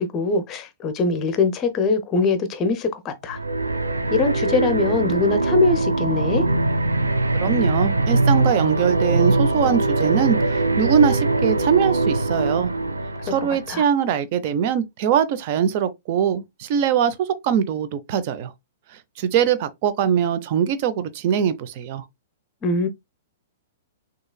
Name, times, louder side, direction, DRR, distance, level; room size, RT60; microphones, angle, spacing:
voice 1, 0.0-3.4 4.1-6.5 13.7-13.8 22.6-22.9, left 3 dB, 30° left, 0.7 m, -22 dB
sound 1, 3.3-13.8, right 2 dB, 80° right, 0.7 m, -22 dB
voice 2, 7.4-12.7 13.2-18.5 19.2-22.0, right 8 dB, 45° right, 0.6 m, -22 dB
6.2 x 2.9 x 2.3 m
figure-of-eight pair, 110°, 0 cm